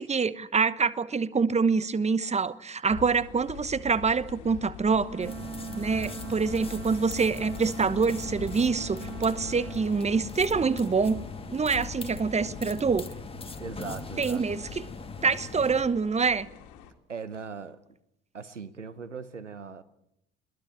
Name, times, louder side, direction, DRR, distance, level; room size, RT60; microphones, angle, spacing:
voice 1, 0.0-5.3 5.8-13.0 14.2-14.8 15.2-16.5, right 5 dB, 20° right, 1.1 m, -26 dB
sound 1, 2.9-16.9, left 9 dB, 55° left, 2.8 m, -44 dB
Wind instrument woodwind instrument, 5.0-9.9, right 6 dB, 40° right, 6.1 m, -41 dB
sound 2, 5.2-15.8, left 3 dB, 15° left, 2.4 m, -41 dB
voice 2, 13.6-14.6 17.1-17.8 18.3-19.8, right 5 dB, 90° right, 0.9 m, -39 dB
22.0 x 18.5 x 8.7 m
figure-of-eight pair, 55°, 35 cm